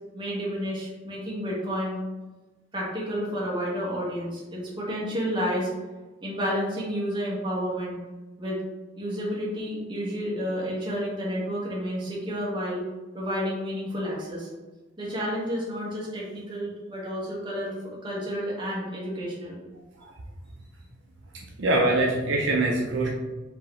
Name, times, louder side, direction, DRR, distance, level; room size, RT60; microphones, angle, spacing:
voice 1, 0.1-2.0 2.7-5.7 6.2-7.9 8.4-8.6 9.0-12.8 13.1-14.5 15.0-19.6, equal, 25° right, -6 dB, 1.3 m, -30 dB
voice 2, 21.3-23.1, right 2 dB, 65° right, -1 dB, 0.6 m, -24 dB
4.8 x 2.8 x 3.2 m, 1.2 s
head